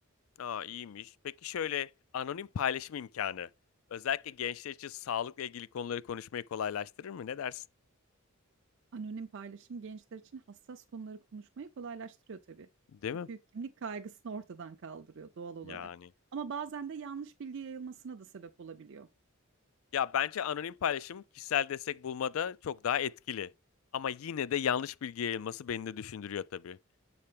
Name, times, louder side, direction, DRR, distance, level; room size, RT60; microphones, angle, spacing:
voice 1, 0.4-3.5 3.9-7.6 13.0-13.3 15.6-16.1 19.9-23.5 23.9-26.8, left 9 dB, 75° left, 0.4 m, -35 dB
voice 2, 8.9-12.7 13.3-15.9 16.3-19.1, right 5 dB, 60° right, 0.5 m, -42 dB
7.5 x 4.3 x 3.4 m
head